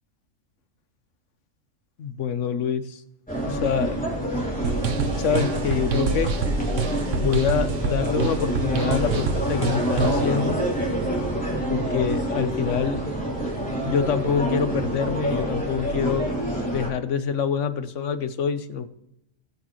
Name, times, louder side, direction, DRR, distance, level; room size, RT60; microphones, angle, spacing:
voice 1, 2.0-3.0 3.5-4.0 5.2-6.3 7.2-10.6 11.7-13.0 13.8-16.3 16.7-18.9, left 7 dB, 70° left, 11 dB, 1.2 m, -26 dB
sound 1, 3.3-16.9, right 1 dB, 5° left, 3.0 m, -27 dB
sound 2, 4.6-10.3, right 6 dB, 70° right, 1.2 m, -28 dB
19.5 x 6.6 x 3.1 m, 0.82 s
omnidirectional pair, 1.4 m